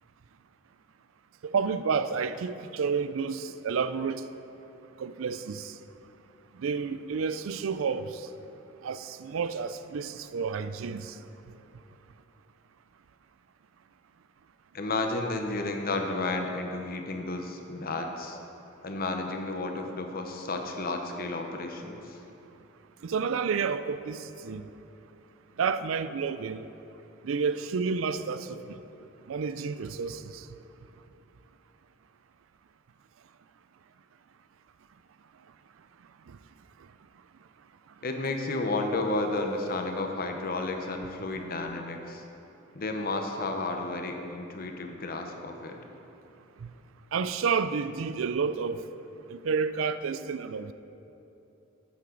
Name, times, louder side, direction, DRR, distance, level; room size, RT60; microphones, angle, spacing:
voice 1, 1.4-4.2 5.0-5.7 6.6-8.0 8.8-11.1 23.0-24.2 24.4-24.6 25.6-26.6 27.2-28.6 29.3-30.2 47.1-48.8 49.3-50.7, right 5 dB, 85° right, 0.4 m, -30 dB
voice 2, 14.7-18.4 18.8-22.2 38.0-42.2 42.7-45.8, left 2 dB, 50° left, 0.9 m, -32 dB
11.5 x 8.5 x 3.9 m
head